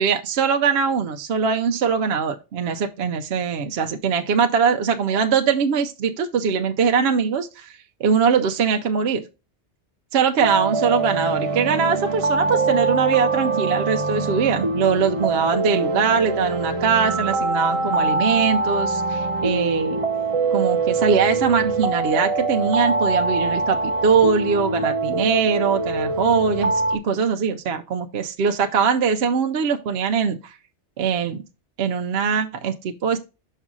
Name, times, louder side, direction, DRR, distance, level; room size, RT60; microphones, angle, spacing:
voice 1, 0.0-9.2 10.1-20.0 20.5-23.8 24.0-30.5 31.0-31.4 31.8-33.2, right 6 dB, 65° right, 0.8 m, -22 dB
sound 1, 10.4-27.0, right 3 dB, 35° right, 0.7 m, -23 dB
6.1 x 5.5 x 3.7 m
omnidirectional pair, 1.2 m